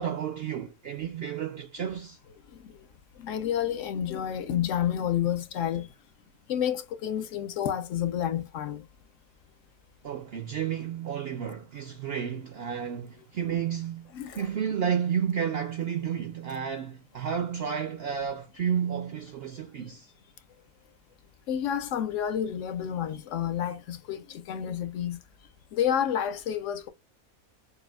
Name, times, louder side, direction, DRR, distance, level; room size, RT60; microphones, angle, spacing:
voice 1, 0.0-2.2 10.0-20.1, right 8 dB, 70° right, 0.6 m, -31 dB
voice 2, 3.2-5.9 6.5-8.8 14.1-14.4 21.5-25.2 25.7-26.9, left 10 dB, 65° left, 0.8 m, -30 dB
6.7 x 2.3 x 2.3 m
omnidirectional pair, 1.5 m